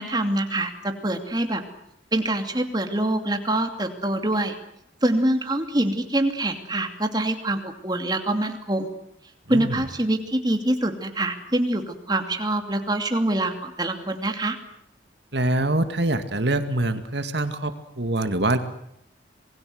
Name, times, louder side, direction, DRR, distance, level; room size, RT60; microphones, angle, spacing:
voice 1, 0.0-1.6 2.1-4.6 5.0-8.9 9.5-14.6, right 1 dB, 20° right, 6 dB, 2.7 m, -25 dB
voice 2, 9.5-9.8 15.3-18.6, right 2 dB, 65° right, 9 dB, 2.2 m, -24 dB
28.0 x 21.0 x 8.0 m, 0.76 s
head